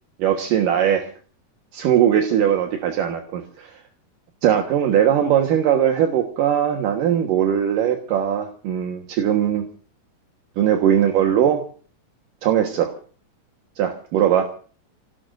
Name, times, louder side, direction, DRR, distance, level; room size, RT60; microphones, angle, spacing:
voice 1, 0.2-1.1 1.7-3.7 4.4-9.7 10.6-11.6 12.4-12.9 13.8-14.5, right 9 dB, 75° right, 4 dB, 3.0 m, -20 dB
29.0 x 18.0 x 2.6 m, 0.42 s
omnidirectional pair, 4.0 m